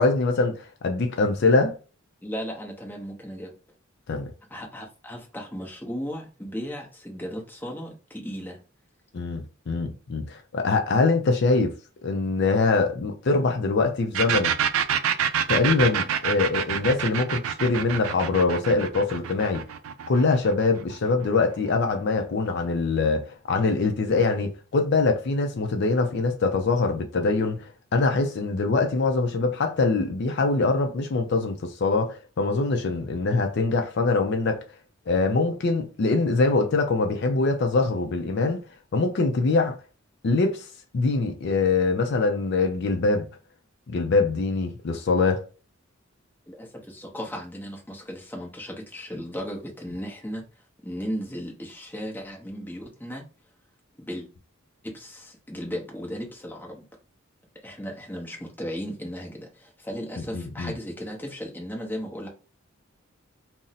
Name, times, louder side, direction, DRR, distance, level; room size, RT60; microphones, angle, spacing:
voice 1, 0.0-1.8 4.1-4.3 9.1-11.7 12.0-14.6 15.5-19.6 20.1-34.6 35.1-38.6 38.9-39.8 40.2-40.7 40.9-43.3 43.9-45.5 60.3-60.7, left 3 dB, 55° left, 0.4 m, -23 dB
voice 2, 2.2-3.5 4.5-8.6 46.5-50.4 50.8-53.2 54.0-54.3 54.8-56.8 57.6-62.3, equal, 10° left, 0.7 m, -36 dB
sound 1, 14.1-21.7, right 8 dB, 85° right, 0.4 m, -27 dB
2.5 x 2.0 x 3.9 m
head